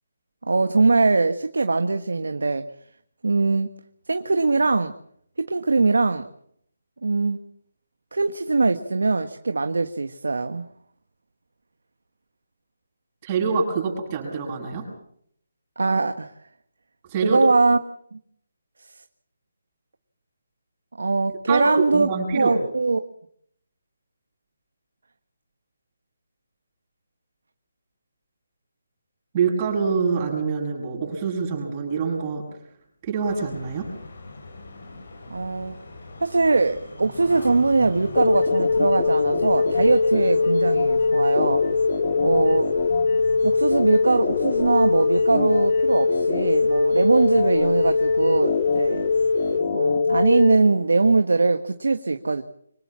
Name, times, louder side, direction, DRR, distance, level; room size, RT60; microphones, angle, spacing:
voice 1, 0.5-2.6 3.2-3.7 4.1-4.9 5.4-6.3 7.0-7.4 8.1-10.7 15.8-16.3 17.2-17.8 18.1-18.2 18.8-18.9 21.0-23.0 35.3-35.8 36.2-41.6 42.2-42.7 43.4-49.1 49.7-52.4, right 3 dB, 80° right, 9 dB, 1.4 m, -21 dB
voice 2, 13.2-14.9 17.1-17.4 21.5-22.6 29.3-32.4 33.0-33.9, right 5 dB, 30° right, -1 dB, 7.8 m, -25 dB
sound 1, 33.3-49.6, left 3 dB, 65° left, 7.0 m, -41 dB
sound 2, 38.2-50.6, left 4 dB, 40° left, 2.2 m, -21 dB
25.5 x 19.0 x 7.4 m, 0.68 s
figure-of-eight pair, 155°, 0 cm